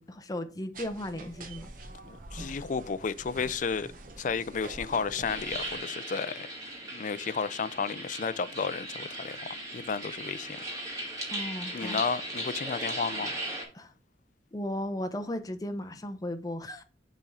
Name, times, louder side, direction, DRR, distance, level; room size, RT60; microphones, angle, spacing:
voice 1, 0.0-1.7 11.3-12.0 13.7-13.9 14.5-16.8, left 1 dB, 20° left, 0.7 m, -36 dB
sound 1, 0.7-5.8, right 2 dB, 50° right, 1.0 m, -45 dB
voice 2, 2.0-3.9 4.2-6.3 6.9-10.6 11.7-13.3, left 5 dB, 45° left, 0.4 m, -32 dB
sound 2, 5.2-13.6, right 1 dB, 20° right, 2.2 m, -38 dB
7.3 x 3.7 x 5.4 m
head